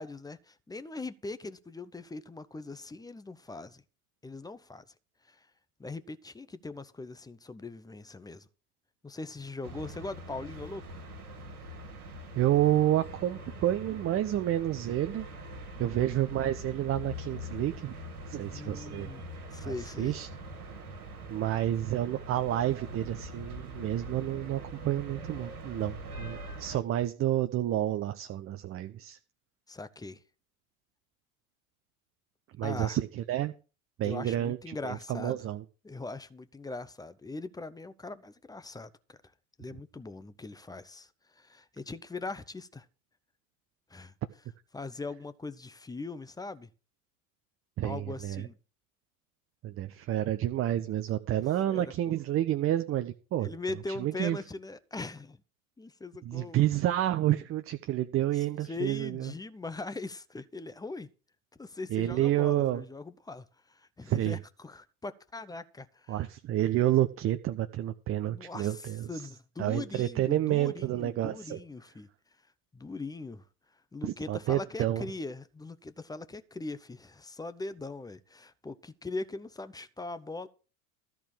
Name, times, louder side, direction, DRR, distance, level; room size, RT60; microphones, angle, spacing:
voice 1, 0.0-3.8 4.2-4.8 5.3-5.5 5.8-8.5 9.0-11.1 15.8-16.2 18.5-19.2 19.5-20.1 29.7-30.2 32.6-33.0 34.0-35.4 35.8-39.2 39.6-42.9 43.9-44.1 44.7-46.7 47.8-48.6 51.3-51.9 53.4-55.4 55.8-56.6 58.7-61.1 61.6-66.3 68.3-72.1 72.7-73.4 73.9-80.5, left 3 dB, 10° left, 0.7 m, -41 dB
sound 1, 9.6-26.8, right 1 dB, 80° right, 1.8 m, -43 dB
voice 2, 12.4-15.3 15.8-17.9 18.3-19.1 19.6-20.3 21.3-29.2 32.6-33.5 34.0-35.6 47.8-48.5 49.6-53.5 54.0-54.4 56.2-59.3 61.9-62.8 64.0-64.4 66.1-69.1 69.6-71.6 74.0-75.1, right 13 dB, 30° right, 0.7 m, -29 dB
13.5 x 4.6 x 8.6 m
figure-of-eight pair, 75°, 44 cm